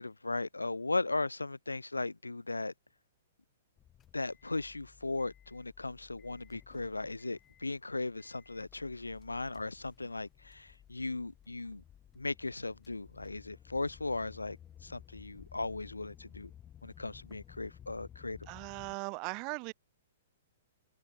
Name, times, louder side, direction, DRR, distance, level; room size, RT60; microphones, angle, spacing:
voice 1, 0.0-2.7 4.1-11.8 12.2-14.6 14.8-16.5 16.8-18.4, left 2 dB, 85° left, 0.3 m, -37 dB
sound 1, 3.8-19.0, left 10 dB, 20° left, 7.2 m, -56 dB
voice 2, 18.5-19.7, right 30 dB, 35° right, 1.7 m, -39 dB
open air
figure-of-eight pair, 115°, 0 cm